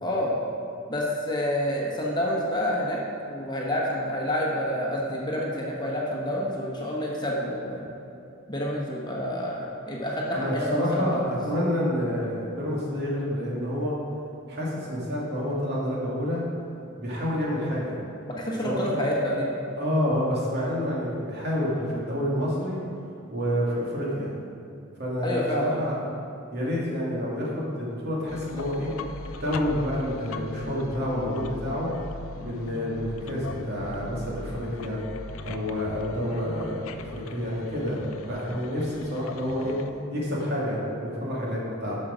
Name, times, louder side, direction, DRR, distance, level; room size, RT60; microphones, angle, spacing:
voice 1, 0.0-0.4 0.9-3.0 3.3-7.9 8.5-11.3 18.3-19.6 25.2-25.8, equal, 20° left, -3 dB, 1.2 m, -28 dB
voice 2, 10.3-13.9 14.5-16.4 17.0-18.0 18.6-19.0 19.8-22.8 23.3-24.3 25.0-26.0 26.5-28.9 29.4-31.9 32.4-35.0 35.4-39.8 40.1-42.0, equal, 55° right, -5 dB, 2.4 m, -28 dB
sound 1, 28.3-39.9, left 3 dB, 80° left, 0.5 m, -40 dB
10.5 x 6.5 x 5.1 m, 2.7 s
head